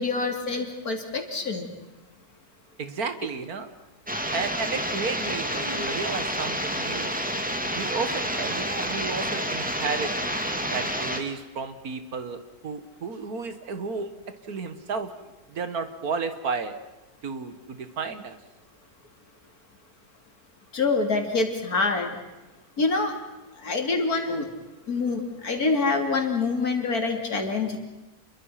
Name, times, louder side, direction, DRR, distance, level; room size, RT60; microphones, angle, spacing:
voice 1, 0.0-1.7 20.7-22.2 22.8-23.1 23.6-24.5 24.9-27.8, left 3 dB, 70° left, 4 dB, 3.4 m, -26 dB
voice 2, 2.8-3.7 4.3-7.1 7.7-10.1 10.7-14.1 14.5-15.1 15.5-16.8 17.2-18.4, right 5 dB, 70° right, 10 dB, 2.0 m, -32 dB
sound 1, 4.1-11.2, equal, 5° right, 2.1 m, -29 dB
29.0 x 23.0 x 5.8 m, 1.1 s
omnidirectional pair, 1.6 m